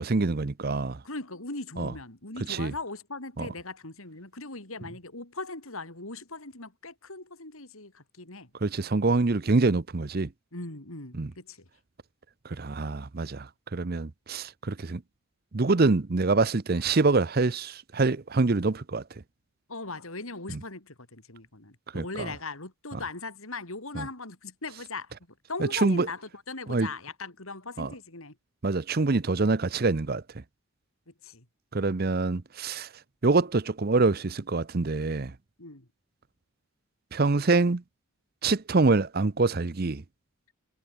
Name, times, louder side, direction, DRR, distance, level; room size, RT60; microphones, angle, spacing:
voice 1, 0.0-1.0 1.8-1.9 2.5-2.7 3.4-3.5 8.6-10.3 11.1-11.3 12.4-15.0 15.5-19.0 21.9-22.3 24.0-24.1 25.6-26.1 26.7-26.9 27.8-27.9 28.6-30.2 31.7-32.9 33.2-35.3 37.1-37.8 38.4-40.0, right 3 dB, 45° right, 0.7 m, -25 dB
voice 2, 1.0-8.5 10.5-11.6 19.7-25.1 25.5-28.4 31.1-31.5 35.6-35.9, left 3 dB, 70° left, 4.3 m, -39 dB
head